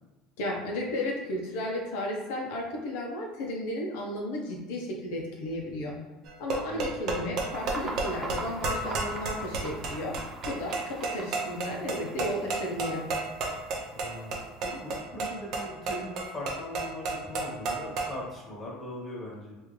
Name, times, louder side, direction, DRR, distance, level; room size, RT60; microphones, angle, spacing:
voice 1, 0.4-5.9 6.4-10.1 10.4-13.1, left 1 dB, 80° left, -1 dB, 0.7 m, -34 dB
sound 1, 6.3-18.2, right 3 dB, 50° right, 0.8 m, -33 dB
voice 2, 6.6-7.3 13.9-19.6, left 1 dB, 20° left, -4 dB, 1.2 m, -40 dB
sound 2, 7.5-15.0, right 2 dB, 20° right, 0.6 m, -43 dB
3.6 x 2.5 x 3.1 m, 1.2 s
cardioid pair, 150°, 0 cm